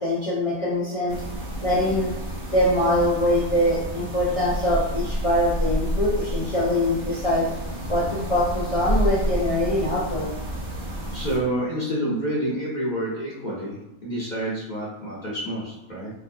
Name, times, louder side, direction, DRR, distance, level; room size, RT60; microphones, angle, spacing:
voice 1, 0.0-1.2 1.6-2.1 2.5-7.5 7.9-10.3, left 1 dB, 65° left, -6 dB, 0.3 m, -23 dB
sound 1, 1.1-11.4, equal, 45° right, 0.8 m, -29 dB
voice 2, 11.1-16.1, right 1 dB, 40° left, -6 dB, 0.7 m, -28 dB
3.4 x 3.0 x 2.6 m, 1.0 s
omnidirectional pair, 1.5 m